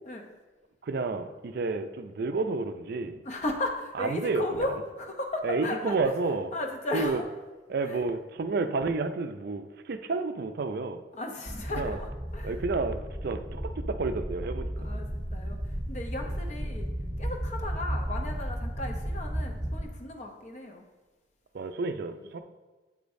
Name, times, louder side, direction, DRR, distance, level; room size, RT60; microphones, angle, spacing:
voice 1, 0.8-3.2 4.0-4.5 5.4-6.5 6.9-7.2 7.7-11.0 11.7-12.0 12.4-13.6 13.9-14.9 21.5-22.4, right 3 dB, 55° right, 9 dB, 0.4 m, -30 dB
voice 2, 3.2-6.1 6.5-7.2 7.8-8.0 11.1-12.6 14.8-16.9 17.2-20.9 22.2-22.3, left 2 dB, 35° left, 3 dB, 0.7 m, -35 dB
sound 1, 11.5-19.9, equal, 5° left, 1.5 m, -34 dB
8.6 x 5.1 x 2.6 m, 1.2 s
head